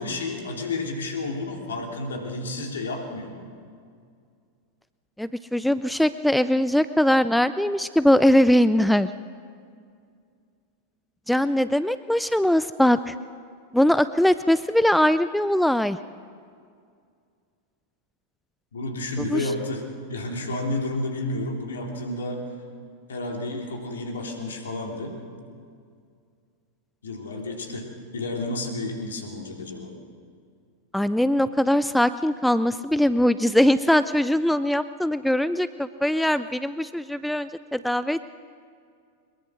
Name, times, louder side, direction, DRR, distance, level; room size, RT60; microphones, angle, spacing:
voice 1, 0.0-3.4 18.7-22.4 23.1-25.2 27.0-29.9, left 2 dB, 65° left, 2 dB, 3.2 m, -31 dB
voice 2, 5.2-9.1 11.3-13.1 13.7-16.0 19.2-19.4 30.9-38.3, left 1 dB, ahead, 14 dB, 0.4 m, -21 dB
22.5 x 21.5 x 6.2 m, 2.2 s
figure-of-eight pair, 90°, 0 cm